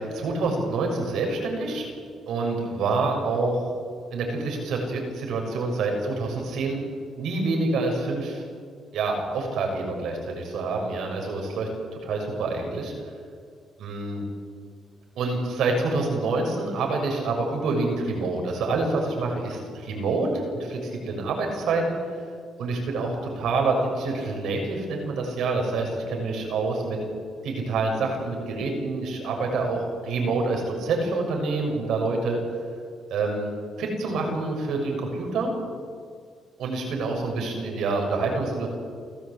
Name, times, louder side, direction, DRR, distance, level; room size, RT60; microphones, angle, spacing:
voice 1, 0.0-1.9 2.3-3.7 4.1-6.8 7.2-8.4 8.9-11.7 12.0-12.9 13.8-14.2 15.1-22.0 22.6-27.0 27.4-32.4 33.1-33.5 33.8-35.5 36.6-38.7, right 3 dB, 80° right, 2 dB, 6.7 m, -27 dB
29.0 x 15.0 x 8.6 m, 2.1 s
cardioid pair, 90°, 0 cm